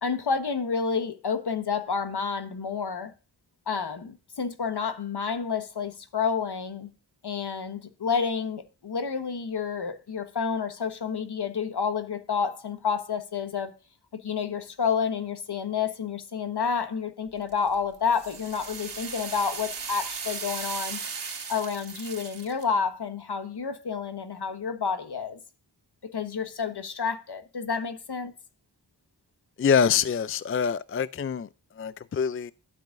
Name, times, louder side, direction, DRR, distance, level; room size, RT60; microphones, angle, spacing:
voice 1, 0.0-3.1 3.7-6.9 7.2-13.8 14.1-21.0 21.5-25.4 26.0-28.3, left 6 dB, 65° left, 1.4 m, -29 dB
sound 1, 17.5-22.6, right 5 dB, 80° right, 2.6 m, -37 dB
voice 2, 29.6-31.5 31.8-32.5, left 7 dB, 30° left, 0.4 m, -25 dB
12.0 x 7.8 x 2.5 m
cardioid pair, 50°, 42 cm